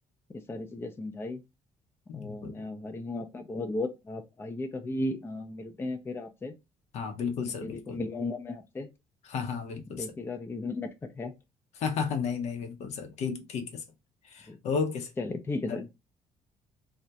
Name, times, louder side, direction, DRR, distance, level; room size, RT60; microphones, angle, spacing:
voice 1, 0.3-1.4 2.1-6.5 7.4-8.9 9.9-11.3 14.5-14.6 15.2-15.8, left 2 dB, 20° left, 0.4 m, -35 dB
voice 2, 2.1-2.5 6.9-8.0 9.3-10.1 11.8-13.8 14.3-15.1 15.7-15.8, left 6 dB, 65° left, 0.6 m, -33 dB
2.3 x 2.1 x 2.7 m
supercardioid pair, 85°, 12 cm